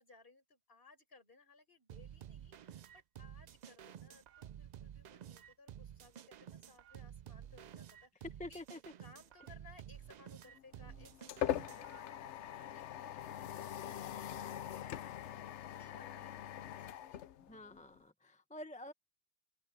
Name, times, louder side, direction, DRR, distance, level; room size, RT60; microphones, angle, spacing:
voice 1, 0.0-8.6 9.0-17.4, left 3 dB, 55° left, 4.7 m, -63 dB
sound 1, 1.9-12.0, right 10 dB, 60° right, 0.4 m, -52 dB
voice 2, 8.4-8.8 17.5-18.9, left 1 dB, 5° left, 0.8 m, -48 dB
sound 2, 10.6-18.0, left 11 dB, 80° left, 1.0 m, -42 dB
open air
omnidirectional pair, 1.2 m